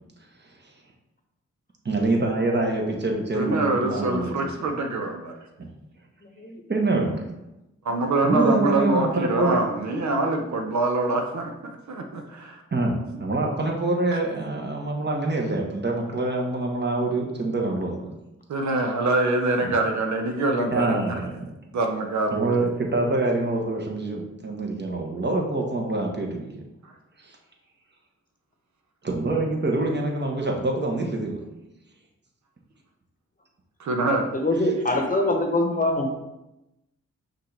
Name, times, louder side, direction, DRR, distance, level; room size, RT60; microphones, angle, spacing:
voice 1, 1.8-4.5 5.6-5.7 6.7-7.2 8.2-9.6 12.7-18.1 20.7-21.5 22.3-26.5 27.2-27.4 29.0-31.4, right 2 dB, 35° right, 0 dB, 1.1 m, -25 dB
voice 2, 3.3-5.4 7.8-11.5 11.9-12.6 14.1-14.2 18.5-21.2 21.7-22.5 33.8-34.3, right 2 dB, 65° right, 3 dB, 0.7 m, -24 dB
voice 3, 34.3-36.1, left 1 dB, 25° left, 2 dB, 0.9 m, -23 dB
5.5 x 2.6 x 3.3 m, 0.93 s
supercardioid pair, 45°, 31 cm